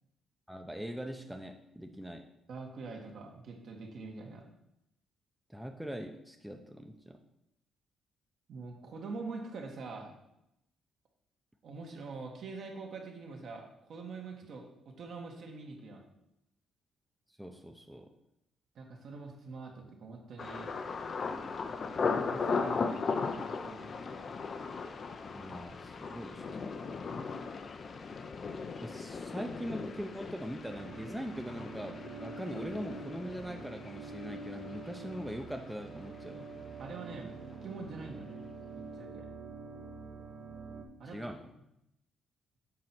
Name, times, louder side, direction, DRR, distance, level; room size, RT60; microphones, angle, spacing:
voice 1, 0.5-2.3 5.5-7.2 17.4-18.1 25.3-27.2 28.8-36.5 41.0-41.5, equal, 5° right, 4 dB, 0.7 m, -42 dB
voice 2, 2.5-4.5 8.5-10.1 11.6-16.0 18.7-20.7 22.1-24.1 36.8-38.4 38.7-39.3 41.0-41.3, right 4 dB, 65° right, 1 dB, 1.6 m, -44 dB
Thunder, 20.4-36.2 36.4-37.0 37.5-37.7, left 4 dB, 45° left, 0.6 m, -38 dB
sound 1, 30.7-40.8, right 3 dB, 50° right, 1.1 m, -46 dB
7.5 x 4.3 x 6.1 m, 0.83 s
cardioid pair, 90°, 0 cm